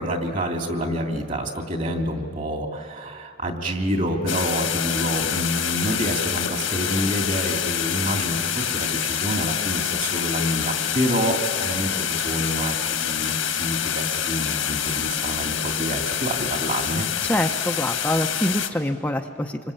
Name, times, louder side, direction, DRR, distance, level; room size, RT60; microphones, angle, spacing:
voice 1, 0.0-17.1, equal, 40° right, 4 dB, 3.0 m, -27 dB
sound 1, 4.3-18.7, left 9 dB, 85° left, 1.8 m, -26 dB
voice 2, 17.2-19.6, left 1 dB, 10° left, 3 dB, 0.8 m, -25 dB
27.0 x 25.0 x 8.7 m, 2.5 s
head